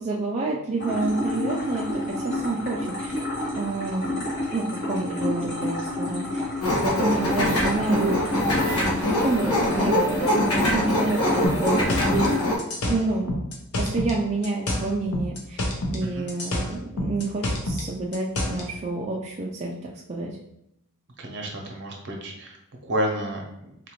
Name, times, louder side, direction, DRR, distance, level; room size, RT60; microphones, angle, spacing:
voice 1, 0.0-3.2 3.5-4.3 4.5-6.5 6.8-8.2 8.5-10.2 10.6-11.9 12.9-13.4 13.8-15.6 15.9-20.4, right 3 dB, 30° right, -3 dB, 0.4 m, -29 dB
sound 1, 0.8-12.4, left 1 dB, 55° left, 1.5 m, -30 dB
sound 2, 6.6-12.6, left 1 dB, 70° left, 1.1 m, -23 dB
sound 3, 11.4-14.2 14.4-16.0 16.3-18.7, left 1 dB, 90° left, 0.7 m, -28 dB
voice 2, 21.2-22.5 22.8-23.4, equal, 55° right, 1 dB, 0.8 m, -30 dB
4.1 x 2.5 x 3.0 m, 0.81 s
head